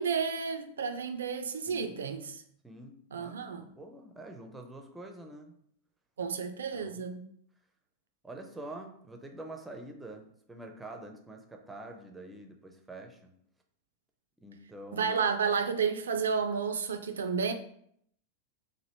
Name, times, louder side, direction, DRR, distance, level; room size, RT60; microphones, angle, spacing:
voice 1, 0.0-2.4 3.1-3.6 6.2-7.2 14.9-17.5, right 6 dB, 65° right, 0.3 m, -31 dB
voice 2, 1.7-2.1 2.6-5.6 6.7-7.0 8.2-13.3 14.4-15.2, right 2 dB, 10° right, 0.5 m, -46 dB
3.0 x 2.5 x 2.9 m
figure-of-eight pair, 90°, 0 cm